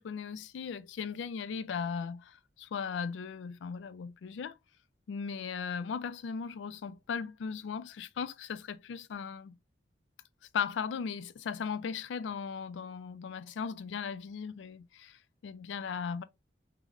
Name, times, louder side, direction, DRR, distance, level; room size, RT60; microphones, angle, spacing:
voice 1, 0.0-4.6 5.1-9.6 10.5-15.2 15.4-16.2, left 6 dB, 85° left, 0.3 m, -37 dB
5.0 x 2.1 x 2.4 m
head